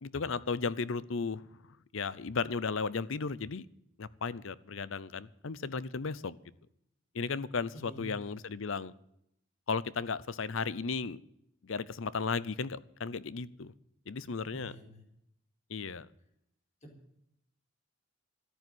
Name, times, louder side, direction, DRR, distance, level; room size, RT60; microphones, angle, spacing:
voice 1, 0.0-1.6 1.9-3.7 4.0-6.4 7.1-8.9 9.7-11.2 11.6-13.7 14.1-14.7 15.7-16.1, left 4 dB, 65° left, 19 dB, 0.7 m, -35 dB
voice 2, 7.7-8.2 14.5-15.0 16.8-17.2, right 1 dB, 35° left, 2 dB, 4.5 m, -49 dB
14.0 x 10.0 x 7.9 m, 0.77 s
head